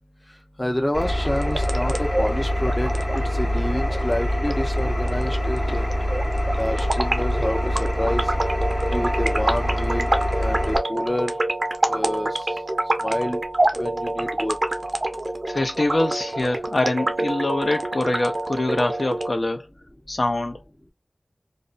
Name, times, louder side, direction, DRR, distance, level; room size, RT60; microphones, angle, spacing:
voice 1, 0.6-6.0 6.6-8.3 8.9-10.1 10.4-11.4 11.8-12.6 13.0-13.4 13.7-14.6, left 1 dB, 25° left, 0.6 m, -28 dB
Engine, 0.9-10.8, equal, 40° left, 0.9 m, -24 dB
sound 1, 1.3-19.3, right 1 dB, 65° right, 0.5 m, -27 dB
voice 2, 15.5-19.7 20.1-20.6, left 2 dB, 75° left, 0.7 m, -24 dB
2.5 x 2.2 x 2.4 m
wide cardioid pair, 50°, 0 cm